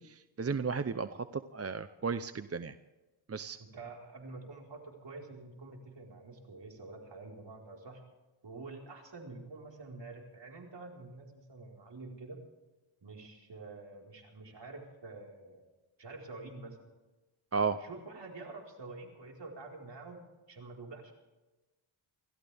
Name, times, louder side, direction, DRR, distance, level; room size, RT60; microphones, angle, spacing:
voice 1, 0.0-2.8 3.3-3.6 17.5-17.8, right 5 dB, 30° right, 11 dB, 0.7 m, -34 dB
voice 2, 3.6-8.0 8.4-12.4 13.0-15.6 16.0-16.8 17.8-21.1, right 3 dB, 55° right, 0 dB, 4.7 m, -47 dB
29.0 x 13.5 x 3.5 m, 1.1 s
cardioid pair, 75°, 50 cm